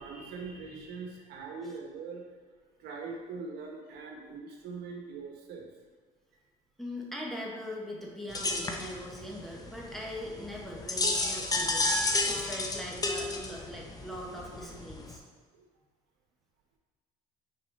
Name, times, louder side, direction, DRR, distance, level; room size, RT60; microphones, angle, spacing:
voice 1, 0.0-2.2 2.8-5.7 15.6-15.7, right 4 dB, 75° right, 0 dB, 1.2 m, -42 dB
voice 2, 6.8-15.2, equal, ahead, -3 dB, 1.5 m, -41 dB
sound 1, 8.3-15.2, left 2 dB, 20° left, 0.8 m, -32 dB
4.7 x 4.5 x 5.3 m, 1.5 s
supercardioid pair, 90°, 17 cm